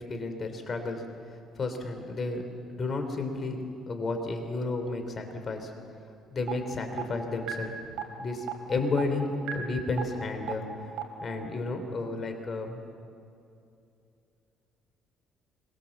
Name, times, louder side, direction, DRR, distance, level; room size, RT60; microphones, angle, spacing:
voice 1, 0.1-2.4 2.7-3.6 3.9-5.7 6.3-7.7 8.2-10.6 11.2-12.8, left 3 dB, 35° left, 6 dB, 3.4 m, -32 dB
sound 1, 6.5-6.6 7.0-7.1 7.5-7.6 8.0-8.1 8.5-8.6 9.0-9.1 9.5-9.6 10.0-10.1 10.5-10.6 11.0-11.1, right 14 dB, 85° right, 3.2 m, -31 dB
26.0 x 23.5 x 7.4 m, 2.6 s
cardioid pair, 115°, 0 cm